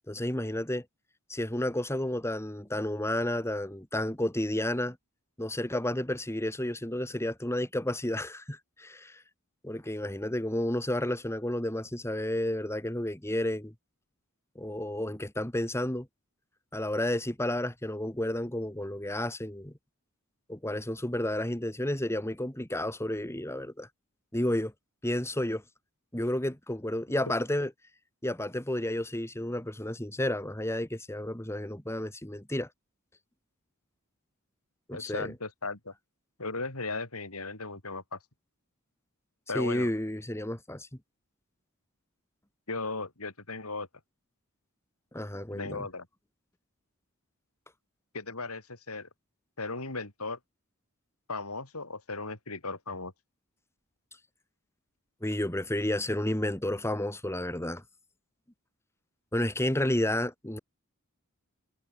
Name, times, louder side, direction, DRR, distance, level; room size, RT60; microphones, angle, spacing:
voice 1, 0.1-0.8 1.3-5.0 5.4-9.2 9.6-13.7 14.6-16.1 16.7-19.7 20.5-23.9 24.3-24.7 25.0-25.6 26.1-27.7 28.2-32.7 34.9-35.3 39.5-40.9 45.1-45.9 55.2-57.8 59.3-60.6, left 1 dB, 10° left, 2.3 m, -31 dB
voice 2, 34.9-35.9 36.4-38.2 39.5-39.9 42.7-43.9 45.5-46.1 48.1-49.1 49.6-50.4 51.3-53.1, left 3 dB, 85° left, 5.7 m, -36 dB
head